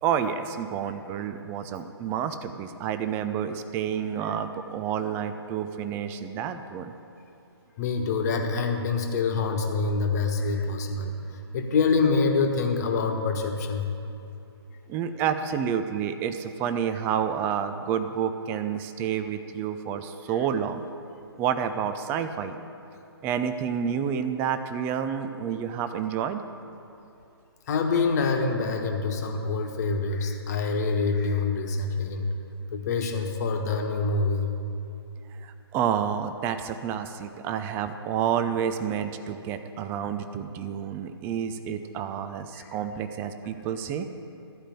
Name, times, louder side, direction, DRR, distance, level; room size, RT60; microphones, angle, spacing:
voice 1, 0.0-6.9 14.9-20.8 21.4-22.6 23.2-26.4 35.3-44.1, right 8 dB, 15° right, 9 dB, 0.5 m, -29 dB
voice 2, 7.8-13.9 27.7-32.3 32.7-34.5 42.5-42.7, left 4 dB, 40° left, 3 dB, 1.4 m, -26 dB
14.0 x 5.0 x 9.0 m, 2.7 s
figure-of-eight pair, 140°, 14 cm